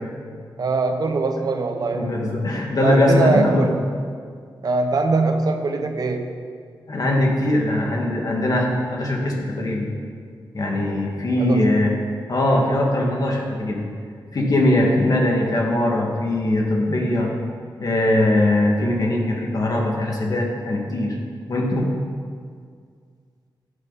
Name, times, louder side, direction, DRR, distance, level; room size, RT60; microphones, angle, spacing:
voice 1, 0.6-2.1 2.8-3.8 4.6-6.3 11.4-11.8, right 3 dB, 50° right, 6 dB, 1.1 m, -22 dB
voice 2, 1.9-3.7 6.9-9.9 10.5-12.0 12.3-13.9 14.3-17.4 17.8-21.2 21.5-21.9, left 1 dB, 50° left, -1 dB, 2.1 m, -21 dB
14.5 x 10.5 x 4.2 m, 2.1 s
wide cardioid pair, 130°, 8 cm